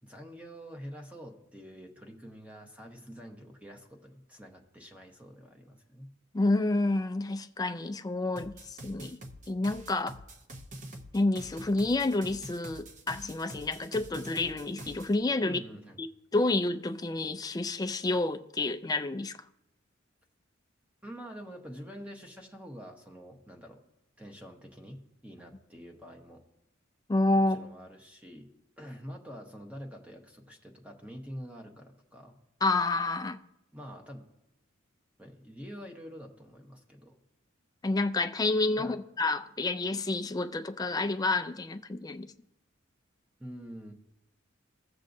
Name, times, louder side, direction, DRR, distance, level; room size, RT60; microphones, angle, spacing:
voice 1, 0.0-6.1 15.4-16.0 21.0-23.8 24.2-26.4 27.5-28.5 28.8-32.4 33.7-34.2 35.2-37.2 38.8-39.0 43.4-43.9, equal, 5° right, 0.9 m, -46 dB
voice 2, 6.3-9.2 9.5-10.1 11.1-15.6 16.0-16.1 16.3-19.3 27.1-27.6 32.6-33.4 37.8-42.3, left 2 dB, 20° left, 0.3 m, -29 dB
sound 1, 8.4-15.1, right 1 dB, 35° right, 0.7 m, -46 dB
16.5 x 6.3 x 2.6 m
head